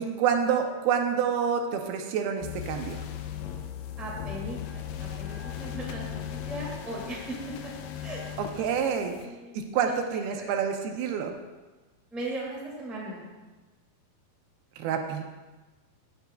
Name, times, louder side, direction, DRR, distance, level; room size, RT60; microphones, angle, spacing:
voice 1, 0.0-3.0 8.6-9.1 9.5-11.3 14.8-15.2, right 7 dB, 80° right, 4 dB, 2.6 m, -27 dB
sound 1, 2.4-9.3, left 9 dB, 80° left, 2.0 m, -37 dB
voice 2, 4.0-7.4 7.6-7.7 8.0-8.2 8.9-9.9 10.3-10.5 12.1-13.2, right 1 dB, ahead, -5 dB, 1.1 m, -38 dB
14.5 x 8.1 x 2.3 m, 1.2 s
omnidirectional pair, 4.4 m